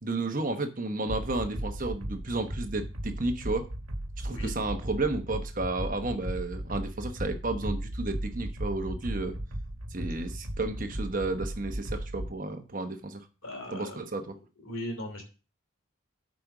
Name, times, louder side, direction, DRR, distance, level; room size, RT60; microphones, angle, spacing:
voice 1, 0.0-3.7 4.2-9.4 9.9-13.2 13.7-14.4, right 2 dB, 40° right, 7 dB, 1.1 m, -32 dB
sound 1, 1.1-12.3, right 1 dB, 85° right, 1.4 m, -36 dB
voice 2, 13.4-14.0 14.6-15.2, equal, 85° left, 2 dB, 3.0 m, -37 dB
8.6 x 5.2 x 6.0 m, 0.34 s
head